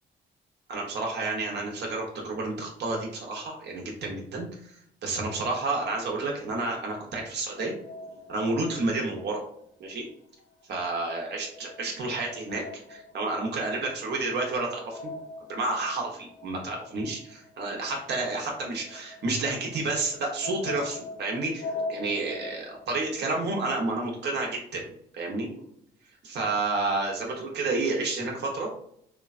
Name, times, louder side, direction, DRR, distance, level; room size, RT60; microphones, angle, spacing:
voice 1, 0.7-4.7 5.0-7.7 8.3-9.4 9.8-10.1 10.7-12.6 12.9-15.0 15.5-24.8 25.1-25.5 26.2-28.8, right 3 dB, 60° right, 0 dB, 0.8 m, -30 dB
sound 1, 7.6-10.1 10.4-24.3, left 3 dB, 75° left, 0.6 m, -43 dB
3.2 x 2.1 x 2.4 m, 0.69 s
cardioid pair, 90°, 20 cm